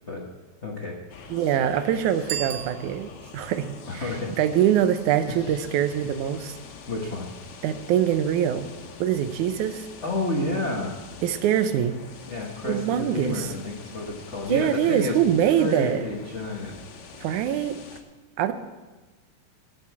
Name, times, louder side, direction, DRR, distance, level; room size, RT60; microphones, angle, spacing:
voice 1, 0.6-1.0 3.2-3.3 3.9-4.3 6.9-7.2 10.0-11.0 12.3-15.2 15.4-16.7, left 2 dB, 85° left, -1 dB, 0.6 m, -30 dB
sound 1, 1.1-18.0, left 5 dB, 70° left, 2.4 m, -45 dB
voice 2, 1.3-6.6 7.6-8.7 9.0-9.9 11.2-12.0 12.6-13.5 14.5-16.0 17.2-17.8 18.4-18.5, right 10 dB, 85° right, 10 dB, 2.2 m, -24 dB
Bicycle bell, 2.2-3.4, right 10 dB, 65° right, 1.2 m, -35 dB
10.5 x 8.4 x 8.2 m, 1.2 s
omnidirectional pair, 3.4 m